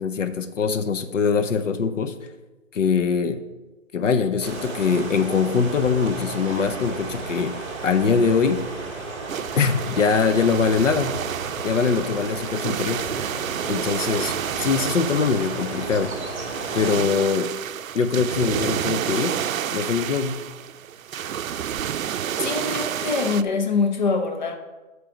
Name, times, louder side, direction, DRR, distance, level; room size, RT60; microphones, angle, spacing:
voice 1, 0.0-2.2 2.7-3.4 3.9-8.6 9.5-11.2 11.6-13.0 13.7-16.1 16.7-17.5 17.9-19.4 19.7-20.4, left 5 dB, 65° left, 10 dB, 0.9 m, -22 dB
sound 1, 4.4-16.9, right 3 dB, 20° right, 1.6 m, -33 dB
sound 2, 9.3-23.4, right 9 dB, 80° right, 0.6 m, -30 dB
voice 2, 22.4-24.5, left 4 dB, 35° left, 4 dB, 0.8 m, -24 dB
12.5 x 5.0 x 5.1 m, 1.2 s
hypercardioid pair, 170°, 40 cm